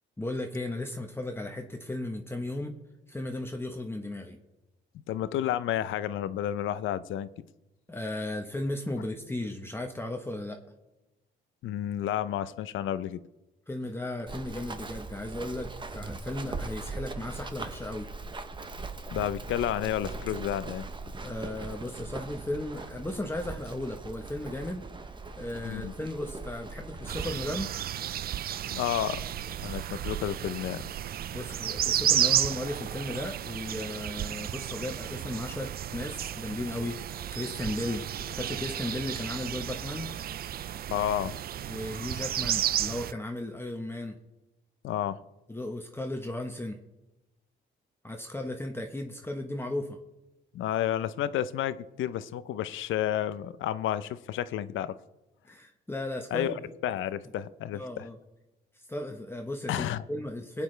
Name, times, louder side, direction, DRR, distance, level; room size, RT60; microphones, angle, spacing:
voice 1, 0.2-2.7 3.1-4.4 7.9-10.6 13.7-18.1 21.2-24.8 25.4-27.7 31.3-40.1 41.7-44.1 45.5-46.8 48.0-50.0 55.4-56.6 57.7-58.2 58.9-60.6, left 1 dB, 10° left, 3 dB, 1.1 m, -35 dB
voice 2, 5.1-7.4 11.6-13.2 19.1-20.8 25.7-25.9 28.7-29.2 29.6-30.8 40.9-41.4 44.8-45.2 50.5-55.0 56.3-56.5 56.8-58.1 59.7-60.0, left 11 dB, 80° left, 15 dB, 0.6 m, -31 dB
Run, 14.3-27.3, right 3 dB, 25° right, 0.9 m, -40 dB
sound 1, 27.1-43.1, right 11 dB, 50° right, 0.4 m, -32 dB
22.5 x 8.8 x 3.3 m, 1.0 s
cardioid pair, 90°, 20 cm